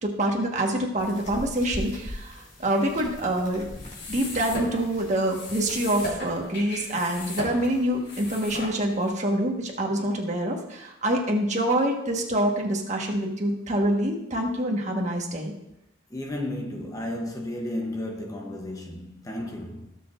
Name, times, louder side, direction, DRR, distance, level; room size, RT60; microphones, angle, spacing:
voice 1, 0.0-3.7 4.1-15.5, right 1 dB, 40° right, 1.5 m, -26 dB
sound 1, 1.0-6.2, left 1 dB, 35° left, 3.3 m, -41 dB
sound 2, 3.7-9.1, left 1 dB, 60° left, 3.9 m, -37 dB
voice 2, 16.1-19.9, left 1 dB, 20° left, 0.9 m, -33 dB
17.0 x 7.0 x 2.6 m
head